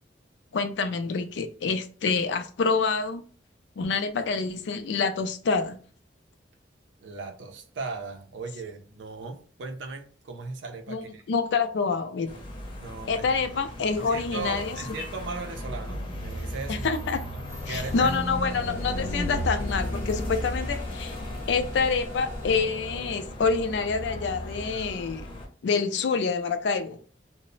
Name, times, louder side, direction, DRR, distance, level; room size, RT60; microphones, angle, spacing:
voice 1, 0.5-3.2 3.8-5.8 10.9-12.3 13.1-14.8 16.7-17.2 17.7-21.2 21.5-25.3 25.6-27.0, left 5 dB, 70° left, 0.4 m, -27 dB
voice 2, 7.0-11.2 12.8-13.4 14.0-16.9 17.7-18.2 18.5-18.7, right 4 dB, 80° right, 0.4 m, -37 dB
sound 1, 12.3-25.5, left 1 dB, 30° left, 0.7 m, -35 dB
sound 2, 17.5-22.6, left 1 dB, 15° right, 0.5 m, -40 dB
2.0 x 2.0 x 3.7 m
head